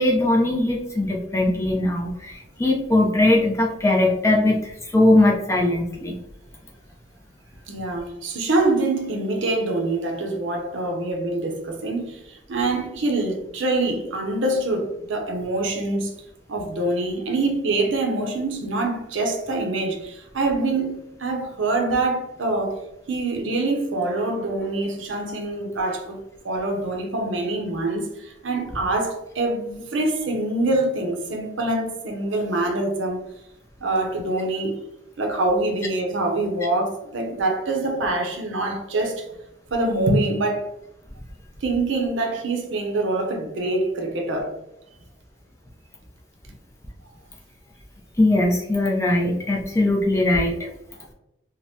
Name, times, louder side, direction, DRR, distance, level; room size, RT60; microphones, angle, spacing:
voice 1, 0.0-6.2 48.2-50.7, left 1 dB, 15° left, 0.4 m, -20 dB
voice 2, 7.7-16.1 16.5-22.8 23.1-33.2 33.8-34.8 35.2-39.3 39.7-40.7 41.6-44.5, right 2 dB, 80° right, 0.6 m, -25 dB
3.4 x 2.1 x 2.6 m
head